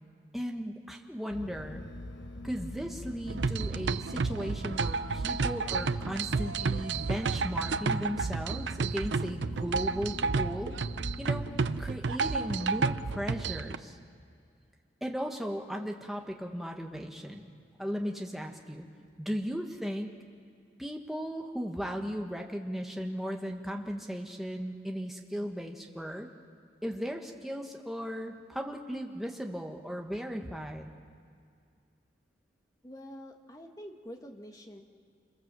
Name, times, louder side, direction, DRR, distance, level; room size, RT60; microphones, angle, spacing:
voice 1, 0.3-1.8 2.4-10.8 11.2-11.5 11.8-14.0 15.0-17.5 17.8-18.8 19.2-20.1 20.8-26.3 26.8-30.9, equal, ahead, 1 dB, 1.6 m, -36 dB
sound 1, 1.3-11.9, left 1 dB, 80° left, 1.4 m, -44 dB
sound 2, 3.3-13.8, right 4 dB, 75° right, 0.6 m, -31 dB
voice 2, 32.8-34.8, equal, 20° left, 3 dB, 1.6 m, -46 dB
26.5 x 23.0 x 7.7 m, 2.3 s
head